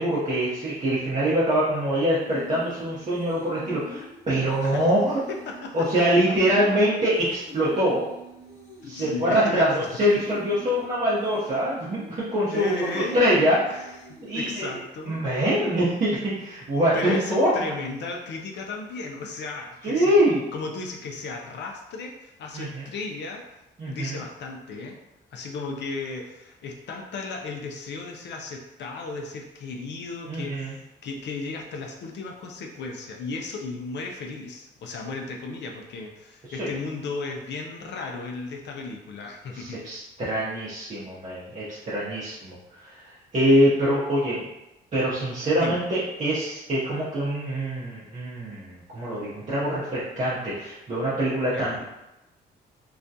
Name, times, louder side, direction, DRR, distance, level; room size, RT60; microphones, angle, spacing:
voice 1, 0.0-5.2 5.7-8.1 8.8-13.9 14.2-14.6 15.1-17.5 19.8-20.4 22.5-22.8 23.8-24.2 30.3-30.8 36.6-36.7 39.5-42.6 42.8-44.4 44.9-51.8, equal, 35° right, -9 dB, 0.7 m, -24 dB
sound 1, 2.2-14.3, left 2 dB, 85° left, 0.9 m, -44 dB
voice 2, 5.3-5.9 8.8-9.9 11.4-11.5 12.5-13.2 13.7-15.2 16.9-20.2 20.5-25.0 25.3-39.8 45.6-45.8 51.5-51.8, left 3 dB, 60° left, 2 dB, 0.4 m, -35 dB
2.4 x 2.1 x 2.6 m, 0.93 s
cardioid pair, 90°, 20 cm